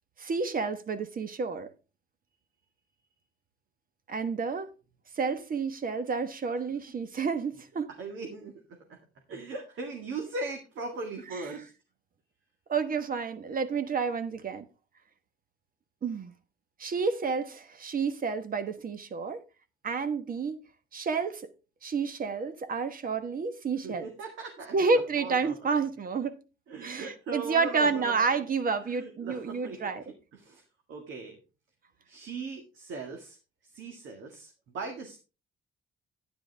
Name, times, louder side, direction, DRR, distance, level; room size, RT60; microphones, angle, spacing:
voice 1, 0.2-1.7 4.1-4.7 5.1-7.9 12.7-14.7 16.0-16.3 16.8-19.4 19.8-20.6 20.9-21.5 21.8-24.1 24.7-26.4 26.8-30.0, right 5 dB, 45° right, 1.3 m, -30 dB
voice 2, 8.0-9.0 9.3-11.7 23.8-25.6 26.7-28.5 28.8-30.1 30.3-30.6 30.9-31.4 32.1-33.4 33.6-35.2, right 3 dB, 75° right, 2.0 m, -39 dB
10.0 x 9.8 x 3.4 m
cardioid pair, 90°, 20 cm